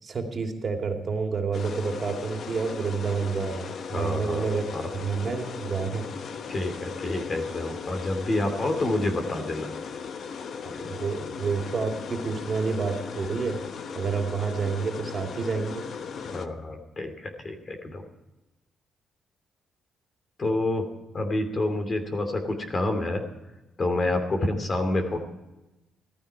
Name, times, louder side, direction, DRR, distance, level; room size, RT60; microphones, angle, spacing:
voice 1, 0.0-4.6 4.9-6.1 10.6-13.6 13.9-15.9, right 5 dB, 45° right, 3 dB, 2.6 m, -29 dB
sound 1, 1.5-16.5, left 6 dB, 60° left, 1.0 m, -37 dB
voice 2, 3.9-4.9 6.5-9.7 16.2-18.0 20.4-20.9 21.1-23.2 23.8-25.2, left 2 dB, 35° left, 6 dB, 2.6 m, -28 dB
15.5 x 14.0 x 4.8 m, 1.0 s
cardioid pair, 90°, 0 cm